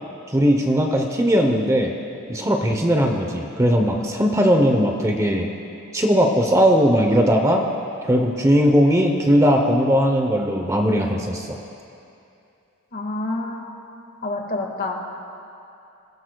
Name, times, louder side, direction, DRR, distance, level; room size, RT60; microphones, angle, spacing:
voice 1, 0.3-1.9 2.3-5.5 5.9-7.6 8.1-11.6, equal, 15° right, 2 dB, 0.8 m, -18 dB
voice 2, 12.9-13.6 14.2-15.1, left 2 dB, 45° left, 1 dB, 1.8 m, -27 dB
25.5 x 16.0 x 2.3 m, 2.7 s
head